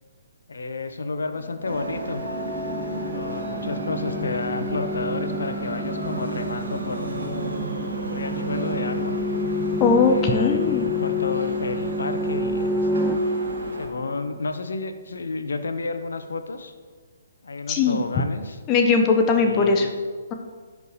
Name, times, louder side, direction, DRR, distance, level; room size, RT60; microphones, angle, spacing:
voice 1, 0.5-2.2 3.1-7.6 8.1-9.1 10.1-12.9 13.7-16.7 17.4-18.6 19.4-19.9, left 3 dB, 70° left, 9 dB, 0.8 m, -31 dB
sound 1, 1.6-13.9, right 2 dB, 75° right, 2.0 m, -33 dB
sound 2, 1.7-14.4, left 1 dB, ahead, 0.4 m, -29 dB
voice 2, 9.8-10.9 17.7-18.0 18.7-19.9, left 4 dB, 25° left, 4 dB, 0.8 m, -19 dB
15.5 x 5.3 x 3.2 m, 1.5 s
figure-of-eight pair, 130°, 0 cm